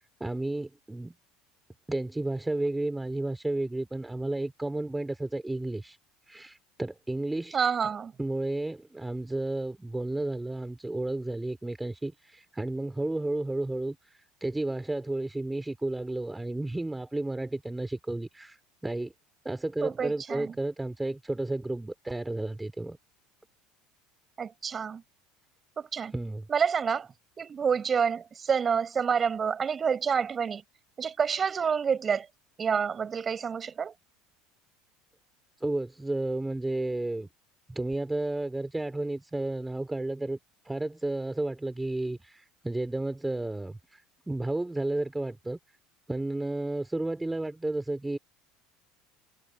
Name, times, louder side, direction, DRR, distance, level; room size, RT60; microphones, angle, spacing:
voice 1, 0.2-1.1 1.9-6.0 6.3-7.6 8.2-19.1 19.4-23.0 26.1-26.5 35.6-37.3 37.7-40.4 40.6-45.6 46.1-48.2, right 2 dB, 10° right, 3.9 m, -32 dB
voice 2, 7.5-8.1 19.8-20.5 24.4-25.0 25.8-26.1 26.5-27.1 27.4-30.6 31.0-32.3 32.6-33.9, right 6 dB, 30° right, 7.4 m, -28 dB
hypercardioid pair, 80°, 0 cm